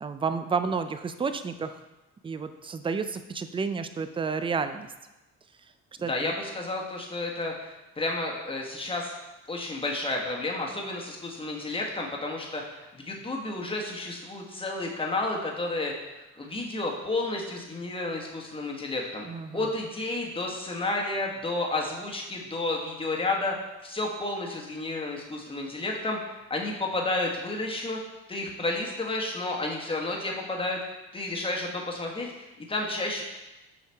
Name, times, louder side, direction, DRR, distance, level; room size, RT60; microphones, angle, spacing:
voice 1, 0.0-1.8 2.2-4.9 6.0-6.3 19.3-19.7, right 5 dB, 20° right, 10 dB, 0.4 m, -31 dB
voice 2, 6.1-9.1 9.5-19.3 19.5-26.2 26.5-28.0 28.3-30.8 31.1-33.2, left 2 dB, 20° left, -1 dB, 1.2 m, -31 dB
5.8 x 5.7 x 3.4 m, 1.0 s
cardioid pair, 90°, 30 cm